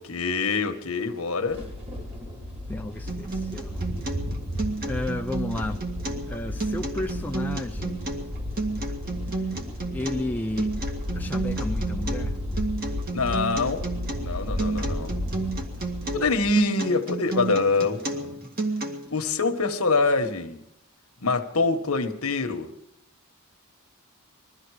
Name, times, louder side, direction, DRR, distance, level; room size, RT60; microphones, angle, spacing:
voice 1, 0.0-1.6 13.1-13.8 14.2-15.1 16.1-18.4 19.1-20.6 21.2-22.7, left 3 dB, 80° left, 1.4 m, -25 dB
sound 1, 1.5-16.5, left 1 dB, 30° right, 2.5 m, -33 dB
voice 2, 2.7-3.8 4.8-5.8 6.3-8.1 9.9-10.7 11.1-12.4 15.0-15.2 17.8-18.0 18.4-18.5, left 1 dB, 10° left, 0.6 m, -33 dB
Acoustic guitar, 3.1-19.1, right 2 dB, 45° right, 1.9 m, -32 dB
21.0 x 13.5 x 4.9 m
head